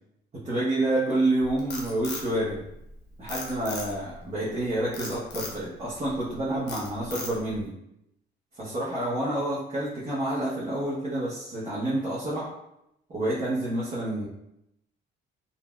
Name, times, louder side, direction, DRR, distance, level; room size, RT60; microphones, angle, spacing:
voice 1, 0.3-2.6 3.2-7.7 8.5-12.5 13.1-14.3, right 1 dB, 35° right, -9 dB, 0.9 m, -28 dB
Frog, 1.4-2.9 3.3-4.2 4.9-5.6 6.1-6.3 6.7-7.6, left 3 dB, 60° left, 0.8 m, -37 dB
3.0 x 2.5 x 2.2 m, 0.82 s
cardioid pair, 90°, 20 cm